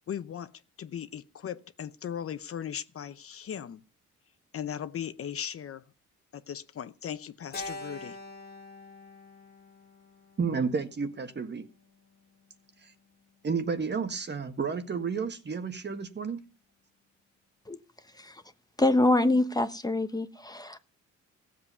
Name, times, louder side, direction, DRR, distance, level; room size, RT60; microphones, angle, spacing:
voice 1, 0.1-3.8 4.5-5.8 6.3-8.2, left 9 dB, 50° left, 0.8 m, -38 dB
Keyboard (musical), 7.5-11.9, left 2 dB, 30° left, 1.4 m, -45 dB
voice 2, 10.4-11.7 12.8-12.9 13.4-16.4, right 5 dB, 35° right, 1.6 m, -31 dB
voice 3, 18.8-20.8, left 2 dB, 15° left, 1.0 m, -25 dB
15.5 x 7.7 x 5.5 m
cardioid pair, 90°, 30 cm